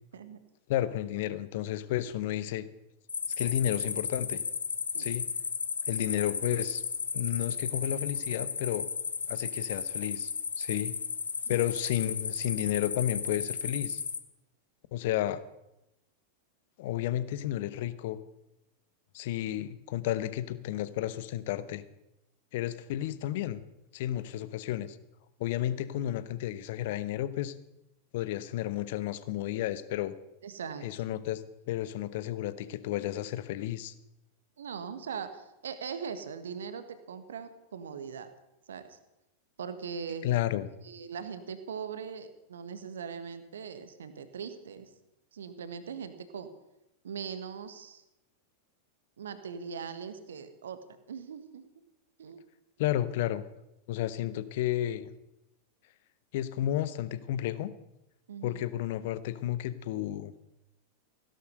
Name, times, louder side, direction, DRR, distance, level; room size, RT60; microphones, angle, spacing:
voice 1, 0.7-2.7 3.4-4.4 5.0-5.3 5.9-6.8 7.1-8.9 9.3-10.3 10.6-10.9 11.5-14.0 14.9-15.4 16.8-18.2 19.1-21.8 22.5-23.6 23.9-25.0 25.4-27.5 28.1-30.1 30.8-31.4 31.7-33.9 40.2-40.7 52.8-53.4 53.9-55.1 56.3-57.7 58.4-60.3, left 13 dB, 50° left, 15 dB, 1.0 m, -32 dB
sound 1, 3.1-14.2, left 6 dB, 70° left, 1.1 m, -34 dB
voice 2, 30.4-30.9 34.6-38.3 38.7-39.0 39.6-40.3 40.8-44.9 45.3-46.5 47.0-48.0 49.2-50.8 51.1-51.6 52.2-52.4 58.3-58.6, right 6 dB, 65° right, 10 dB, 1.4 m, -40 dB
16.5 x 11.5 x 6.5 m, 0.89 s
figure-of-eight pair, 90°, 0 cm